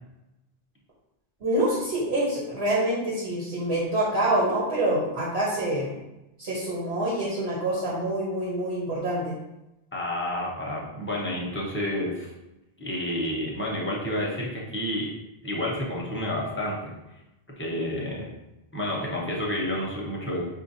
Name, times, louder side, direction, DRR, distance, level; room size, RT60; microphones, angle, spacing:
voice 1, 1.4-6.0 6.4-9.3, right 1 dB, 85° right, -6 dB, 1.4 m, -26 dB
voice 2, 9.9-12.3 12.8-15.1 15.4-16.9 17.6-18.3 18.7-20.4, left 1 dB, 15° left, -3 dB, 0.7 m, -30 dB
5.4 x 2.5 x 2.7 m, 0.94 s
omnidirectional pair, 1.1 m